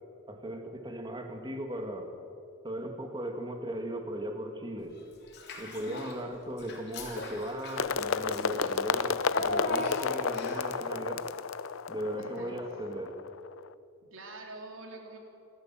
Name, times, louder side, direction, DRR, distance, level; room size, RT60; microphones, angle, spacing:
voice 1, 0.3-2.1 2.6-5.0 5.6-11.3 11.9-13.2, right 1 dB, 20° right, 4 dB, 2.1 m, -37 dB
Child speech kid speaking / Bathtub (filling or washing), 5.3-6.2 6.6-10.8, left 2 dB, 50° left, 3.6 m, -39 dB
sound 1, 7.8-13.7, left 5 dB, 70° left, 0.6 m, -32 dB
voice 2, 12.2-12.6 14.1-15.2, right 2 dB, 70° right, 1 dB, 3.7 m, -45 dB
27.5 x 13.0 x 7.6 m, 2.5 s
head